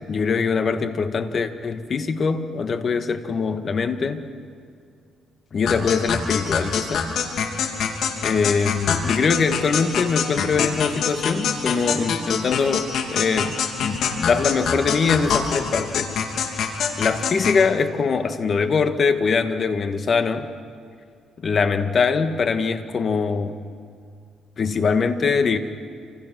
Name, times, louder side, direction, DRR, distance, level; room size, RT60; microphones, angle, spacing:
voice 1, 0.1-4.2 5.5-7.1 8.2-16.1 17.0-20.5 21.4-23.6 24.6-25.6, left 5 dB, 45° left, 8 dB, 1.9 m, -22 dB
sound 1, 5.7-17.6, left 6 dB, 75° left, 3.0 m, -25 dB
29.0 x 27.0 x 6.2 m, 2.3 s
cardioid pair, 90°, 0 cm